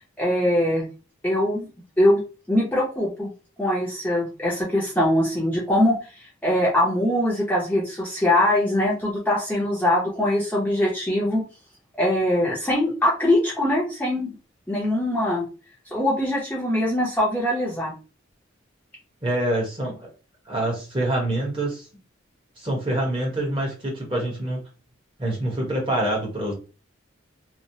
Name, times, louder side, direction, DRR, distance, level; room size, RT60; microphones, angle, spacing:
voice 1, 0.2-0.9 1.2-1.7 2.0-2.2 2.5-3.3 3.6-5.9 6.4-11.4 12.0-14.3 14.7-15.4 15.9-17.9, left 1 dB, 10° left, -5 dB, 0.7 m, -22 dB
voice 2, 19.2-20.1 20.5-21.9 22.6-24.6 25.2-26.5, right 1 dB, 25° right, -2 dB, 1.0 m, -26 dB
3.0 x 2.1 x 2.7 m, 0.33 s
head